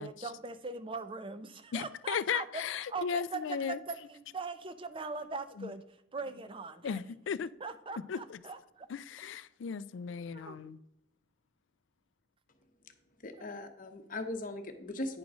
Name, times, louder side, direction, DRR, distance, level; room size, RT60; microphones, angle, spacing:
voice 1, 0.0-2.6 2.9-5.8 6.1-7.0 7.6-8.9 10.3-10.7 13.4-13.5, right 4 dB, 25° right, 0.5 m, -41 dB
voice 2, 1.7-3.8 5.6-5.7 6.8-7.5 8.1-8.4 8.9-10.8, left 7 dB, 70° left, 0.4 m, -36 dB
voice 3, 13.2-15.2, left 2 dB, 45° left, 0.9 m, -39 dB
9.7 x 3.8 x 6.0 m
head